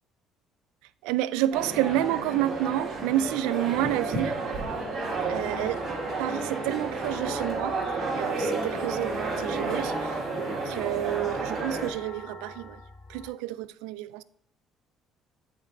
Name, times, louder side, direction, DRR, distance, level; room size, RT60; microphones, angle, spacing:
voice 1, 1.0-4.4 5.3-5.9 6.2-7.8 8.1-10.2 10.6-12.8 13.1-14.2, right 14 dB, 85° right, 0.3 m, -29 dB
sound 1, 1.5-11.9, right 3 dB, 55° right, 2.8 m, -31 dB
sound 2, 5.1-13.3, left 3 dB, 20° left, 1.1 m, -45 dB
8.1 x 5.2 x 3.8 m
supercardioid pair, 75°, 0 cm